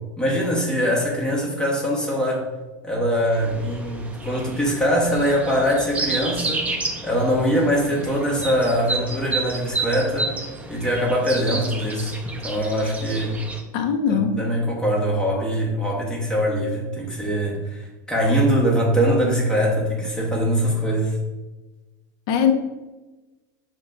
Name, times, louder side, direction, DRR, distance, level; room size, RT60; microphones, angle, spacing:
voice 1, 0.2-2.4 2.8-6.7 7.0-10.3 10.7-12.1 12.4-13.4 14.1-21.2, equal, 5° left, -3 dB, 1.1 m, -22 dB
sound 1, 3.3-13.6, right 3 dB, 15° right, 0.5 m, -31 dB
voice 2, 13.7-14.4 22.3-22.5, left 7 dB, 55° left, 6 dB, 0.5 m, -20 dB
6.4 x 2.2 x 2.5 m, 1.1 s
supercardioid pair, 125°, 10 cm